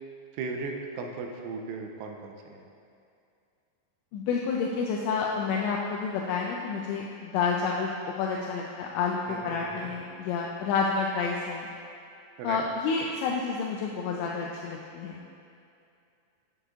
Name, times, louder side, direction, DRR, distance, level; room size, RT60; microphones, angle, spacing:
voice 1, 0.3-2.6 9.3-9.9 12.4-12.6, right 4 dB, 85° right, 2 dB, 2.8 m, -37 dB
voice 2, 4.1-7.9 8.2-11.7 12.4-15.2, left 5 dB, 85° left, -1 dB, 2.5 m, -29 dB
8.1 x 8.0 x 2.4 m, 2.5 s
omnidirectional pair, 5.6 m